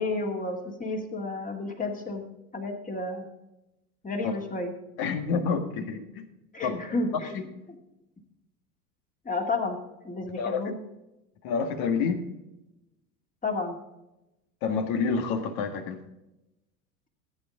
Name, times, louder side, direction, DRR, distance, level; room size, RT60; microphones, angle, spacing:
voice 1, 0.0-2.3 2.5-3.3 4.0-4.7 6.5-7.3 9.2-9.8 10.0-10.8 13.4-13.8, left 3 dB, 15° left, 2 dB, 2.5 m, -31 dB
voice 2, 5.0-6.2 6.6-6.8 7.3-7.4 10.4-10.6 11.4-12.3 14.6-16.0, left 5 dB, 50° left, 7 dB, 1.8 m, -28 dB
15.5 x 9.1 x 3.7 m, 0.94 s
figure-of-eight pair, 80°, 47 cm